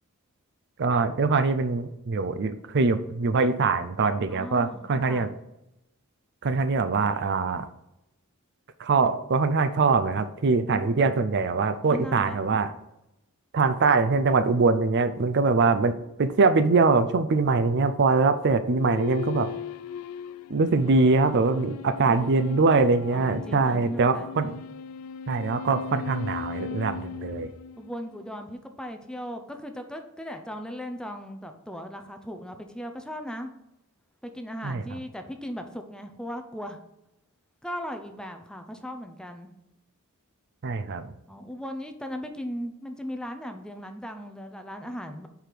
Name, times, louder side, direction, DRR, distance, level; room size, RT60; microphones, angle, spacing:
voice 1, 0.8-5.3 6.4-7.7 8.8-12.7 13.5-19.5 20.5-24.5 25.3-27.5 34.6-35.0 40.6-41.1, right 4 dB, 55° right, 10 dB, 0.5 m, -23 dB
voice 2, 4.3-5.3 10.7-11.2 11.9-12.4 16.4-16.7 23.1-24.5 27.8-33.5 34.2-36.8 37.6-39.5 41.3-45.3, equal, 5° left, 6 dB, 0.5 m, -38 dB
sound 1, 18.6-28.3, left 7 dB, 90° left, 0.3 m, -38 dB
5.1 x 4.7 x 5.9 m, 0.87 s
head